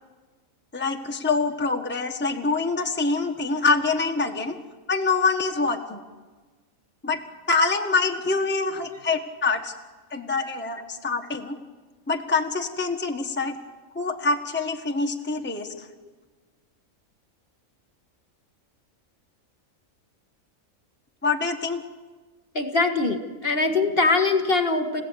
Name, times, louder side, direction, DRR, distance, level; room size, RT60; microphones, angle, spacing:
voice 1, 0.7-4.6 4.9-6.0 7.0-7.2 7.5-9.7 10.1-11.6 12.1-13.6 13.9-15.9 21.2-21.8, left 4 dB, 10° left, 3 dB, 1.3 m, -25 dB
voice 2, 22.5-25.0, left 3 dB, 45° left, 6 dB, 2.1 m, -22 dB
30.0 x 16.0 x 8.1 m, 1.3 s
omnidirectional pair, 1.4 m